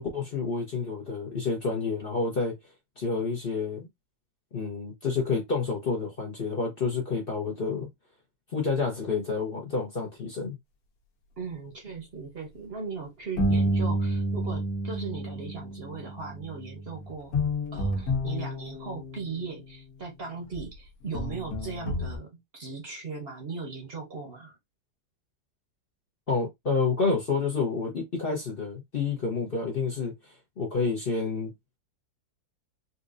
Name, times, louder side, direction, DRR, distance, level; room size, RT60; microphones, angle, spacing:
voice 1, 0.0-2.5 3.0-3.9 4.5-7.9 8.5-10.6 26.3-31.5, left 4 dB, 40° left, 0.9 m, -29 dB
voice 2, 11.4-17.4 17.7-24.6, right 4 dB, 45° right, 1.0 m, -38 dB
sound 1, 13.4-19.3 20.5-20.6 21.1-22.2, equal, 75° left, 1.4 m, -29 dB
4.1 x 2.5 x 2.5 m
omnidirectional pair, 1.7 m